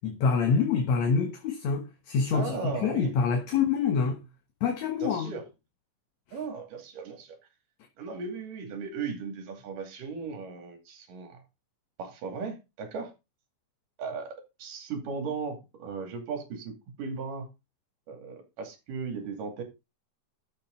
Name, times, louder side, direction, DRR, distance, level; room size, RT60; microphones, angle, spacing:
voice 1, 0.0-4.2 4.6-5.4 6.3-6.4, left 5 dB, 60° left, 2.3 m, -26 dB
voice 2, 2.3-3.1 5.0-5.5 6.3-7.4 8.0-11.4 12.0-13.1 14.0-17.5 18.1-19.6, right 5 dB, 75° right, 4.0 m, -36 dB
12.0 x 7.4 x 3.8 m
omnidirectional pair, 3.9 m